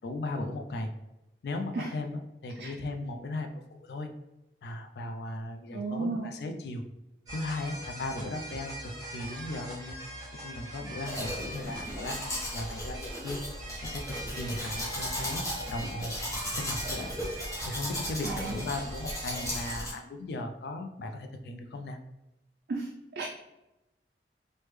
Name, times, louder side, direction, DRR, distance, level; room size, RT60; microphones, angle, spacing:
voice 1, 0.0-0.9 1.4-4.1 4.6-6.8 7.3-10.0 10.4-13.4 13.8-16.1 16.5-17.2 17.6-22.0, left 2 dB, 65° left, 5 dB, 0.3 m, -37 dB
voice 2, 5.7-6.3 18.2-18.5 22.7-22.9 23.2-23.3, right 3 dB, 55° right, -1 dB, 0.3 m, -33 dB
sound 1, 7.3-19.8, right 1 dB, 20° right, 0.7 m, -42 dB
Domestic sounds home sounds, 11.1-19.9, left 1 dB, 20° left, 0.7 m, -36 dB
3.3 x 2.1 x 3.1 m, 0.95 s
head